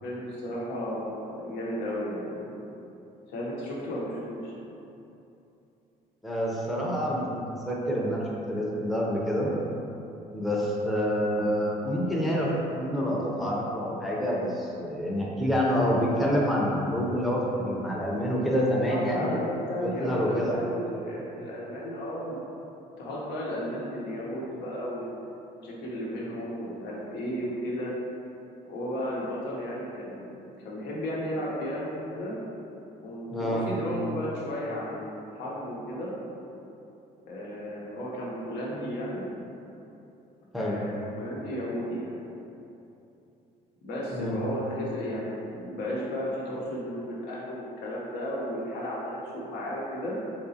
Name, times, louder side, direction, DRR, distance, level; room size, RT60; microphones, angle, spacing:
voice 1, 0.0-2.7 3.3-4.5 18.6-22.4 23.0-25.2 25.6-27.9 28.6-32.4 33.0-36.1 37.3-39.3 40.5-42.2 43.8-50.2, equal, 80° left, -5 dB, 0.8 m, -34 dB
voice 2, 6.2-9.5 10.3-19.3 19.8-20.6 33.3-33.7 40.5-40.8 44.1-44.4, equal, ahead, -5 dB, 0.5 m, -27 dB
3.6 x 2.9 x 2.7 m, 2.8 s
cardioid pair, 110°, 17 cm